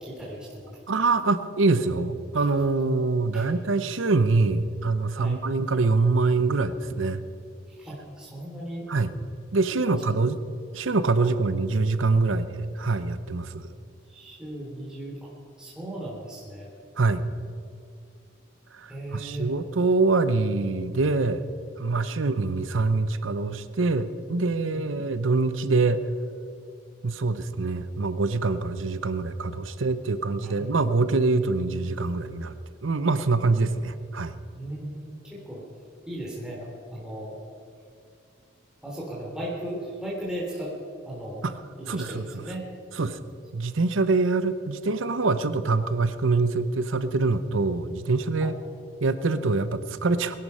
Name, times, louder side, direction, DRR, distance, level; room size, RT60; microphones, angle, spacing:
voice 1, 0.0-0.8 3.3-3.5 5.2-5.4 7.8-8.9 9.9-10.0 11.2-11.3 14.1-15.2 15.6-16.7 18.9-19.5 21.9-22.1 24.7-24.9 30.4-30.7 34.6-35.6 36.1-37.4 38.8-40.7 41.0-41.5 41.8-42.7 48.4-48.5, right 1 dB, 5° right, -5 dB, 3.0 m, -36 dB
voice 2, 0.9-7.2 8.9-9.1 9.5-10.4 10.7-13.7 17.0-17.2 18.7-21.4 21.8-26.0 27.0-32.5 32.8-34.3 41.4-41.6 41.9-42.4 42.9-43.2 43.5-48.6 49.0-50.4, right 3 dB, 85° right, 13 dB, 0.7 m, -24 dB
20.0 x 11.5 x 5.5 m, 2.3 s
head